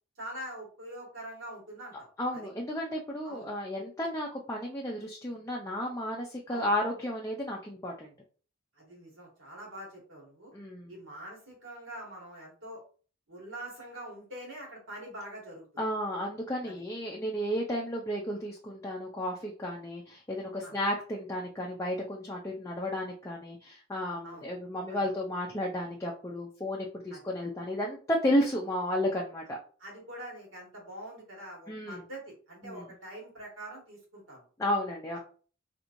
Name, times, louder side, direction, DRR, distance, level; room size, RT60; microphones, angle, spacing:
voice 1, 0.2-2.5 3.2-3.5 6.5-6.7 8.8-10.5 10.9-12.8 13.3-15.7 16.6-16.7 20.6-20.7 24.2-24.5 24.9-25.0 27.1-27.2 29.8-34.4, right 1 dB, 70° right, -2 dB, 1.6 m, -44 dB
voice 2, 2.2-8.1 10.5-10.9 15.8-29.6 31.7-32.0 32.6-32.9 34.6-35.2, left 1 dB, 15° left, -1 dB, 0.4 m, -33 dB
3.3 x 3.0 x 2.5 m, 0.40 s
head